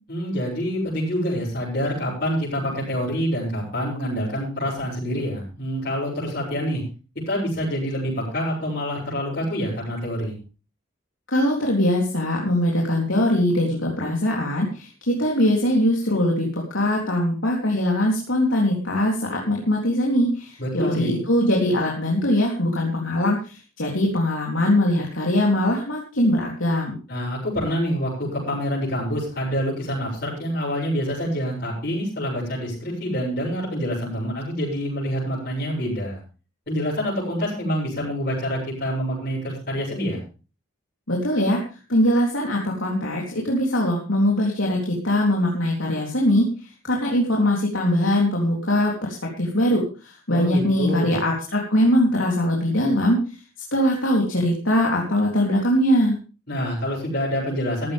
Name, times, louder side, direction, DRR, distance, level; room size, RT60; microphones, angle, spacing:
voice 1, 0.1-6.8 7.3-10.3 20.6-21.2 27.1-36.2 36.7-40.2 50.3-51.2 56.5-57.9, equal, 50° left, -7 dB, 7.5 m, -26 dB
voice 2, 11.3-27.0 41.1-53.2 53.7-56.2, left 1 dB, 75° left, -1 dB, 3.6 m, -22 dB
14.5 x 14.5 x 3.6 m, 0.34 s
head